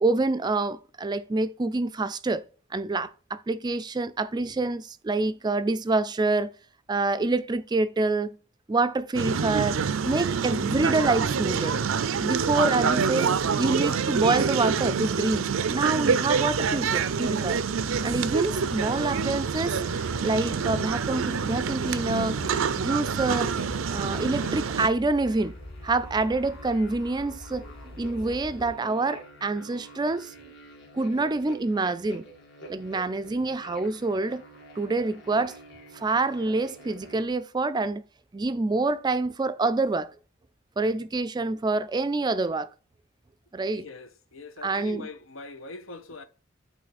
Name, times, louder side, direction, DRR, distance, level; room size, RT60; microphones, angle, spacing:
voice 1, 0.0-2.4 2.7-6.5 6.9-8.3 8.7-11.9 12.2-17.6 18.0-19.8 20.2-22.4 22.7-23.6 23.9-25.5 25.8-30.3 30.9-32.2 32.7-34.4 34.8-35.6 35.9-38.0 38.3-40.1 40.8-42.7 43.5-43.9 44.6-45.1, right 3 dB, 20° right, 0.4 m, -27 dB
sound 1, 9.1-24.9, right 6 dB, 85° right, 0.5 m, -27 dB
sound 2, 17.1-28.7, left 1 dB, 30° left, 0.8 m, -43 dB
sound 3, 18.3-37.2, right 1 dB, 65° left, 2.2 m, -46 dB
voice 2, 43.7-46.2, left 3 dB, 80° left, 0.8 m, -42 dB
8.5 x 3.2 x 4.1 m
head